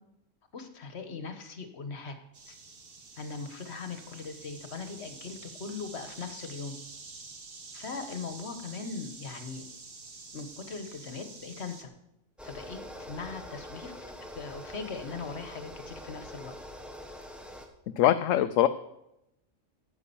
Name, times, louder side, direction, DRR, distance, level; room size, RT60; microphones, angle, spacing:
voice 1, 0.5-2.1 2.5-2.6 3.2-6.8 7.7-9.6 10.3-11.9 12.4-12.8 13.1-13.9 14.3-16.5, left 4 dB, 55° left, 8 dB, 1.6 m, -40 dB
sound 1, 2.3-11.8, right 4 dB, 45° right, 1.5 m, -48 dB
sound 2, 12.4-17.7, equal, ahead, 1.3 m, -44 dB
voice 2, 18.0-18.7, left 12 dB, 75° left, 11 dB, 0.9 m, -22 dB
9.7 x 9.5 x 7.0 m, 0.85 s
omnidirectional pair, 1.4 m